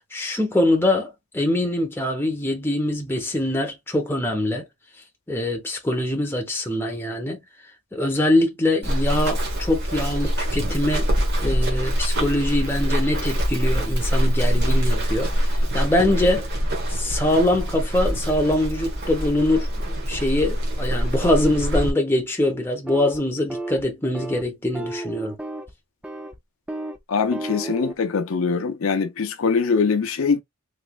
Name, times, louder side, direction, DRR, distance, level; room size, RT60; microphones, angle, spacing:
voice 1, 0.1-1.1 1.3-4.6 5.3-7.4 7.9-11.1 11.4-15.3 15.7-16.5 16.9-25.3, left 1 dB, 10° left, 0.8 m, -23 dB
Run, 8.8-21.9, equal, 50° right, 1.1 m, -24 dB
sound 1, 22.9-23.2 23.5-23.8 24.1-24.4 24.7-25.7 26.0-26.4 26.7-27.0 27.3-27.9, right 2 dB, 5° right, 0.3 m, -32 dB
voice 2, 27.1-30.4, left 5 dB, 80° left, 0.6 m, -22 dB
3.2 x 2.9 x 2.3 m
head